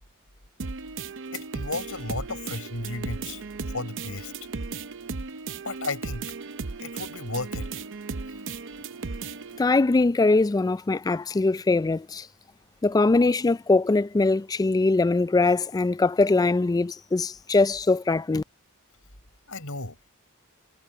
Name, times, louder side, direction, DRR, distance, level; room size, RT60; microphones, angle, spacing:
sound 1, 0.6-9.6, right 4 dB, 60° right, 0.8 m, -36 dB
voice 1, 1.3-3.4 3.7-4.3 5.6-6.2 6.8-7.7 19.5-20.0, left 3 dB, 70° left, 6.7 m, -34 dB
voice 2, 9.6-12.3 12.8-18.4, left 3 dB, 15° left, 0.3 m, -22 dB
head